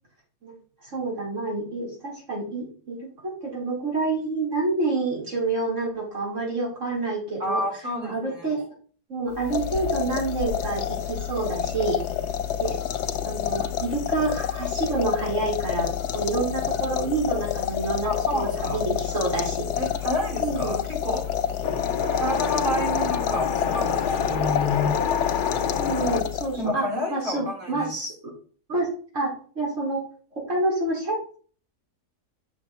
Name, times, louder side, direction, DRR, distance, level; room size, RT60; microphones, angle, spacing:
voice 1, 0.8-7.6 8.0-8.6 9.1-12.0 12.6-12.8 13.2-19.7 20.4-20.8 25.8-26.8 27.1-28.1 28.7-28.9 29.1-30.0 30.3-31.2, right 3 dB, 50° right, -3 dB, 4.9 m, -28 dB
voice 2, 7.4-8.5 18.0-18.8 19.8-21.3 22.1-25.0 26.6-27.9, left 1 dB, 35° right, 0 dB, 3.3 m, -29 dB
sound 1, 9.4-26.8, left 9 dB, 90° left, 1.5 m, -28 dB
Wind, 21.6-26.2, left 6 dB, 50° left, 0.6 m, -27 dB
7.8 x 6.6 x 4.2 m, 0.42 s
omnidirectional pair, 1.7 m